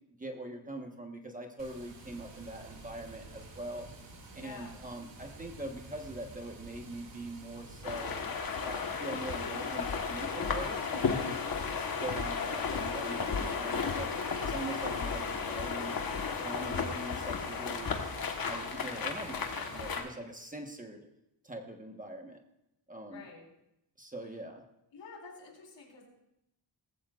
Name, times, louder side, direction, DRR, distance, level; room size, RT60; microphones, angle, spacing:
voice 1, 0.2-3.9 4.3-8.2 8.6-11.4 11.9-14.1 14.4-16.0 16.4-18.0 18.3-21.1 21.4-22.4 22.9-23.2 24.0-24.6, right 1 dB, 20° right, 3 dB, 1.2 m, -42 dB
Water, 1.6-20.0, right 3 dB, 70° right, 2.6 m, -50 dB
voice 2, 4.3-4.8 23.1-23.5 24.9-26.1, left 4 dB, 75° left, -2 dB, 4.2 m, -49 dB
sound 1, 7.8-20.1, left 5 dB, 50° left, 1.3 m, -34 dB
18.5 x 15.5 x 2.5 m, 0.84 s
wide cardioid pair, 155°, 45 cm